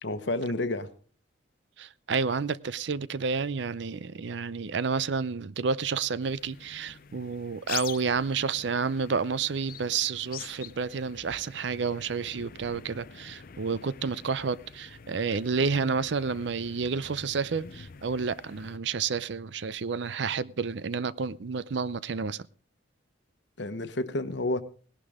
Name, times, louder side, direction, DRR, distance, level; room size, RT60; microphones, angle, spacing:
voice 1, 0.0-0.9 23.6-24.6, left 2 dB, 65° left, 1.1 m, -30 dB
voice 2, 1.8-22.5, right 5 dB, 65° right, 0.5 m, -30 dB
sound 1, 6.2-18.8, left 8 dB, 45° left, 0.5 m, -45 dB
18.5 x 11.5 x 3.6 m
head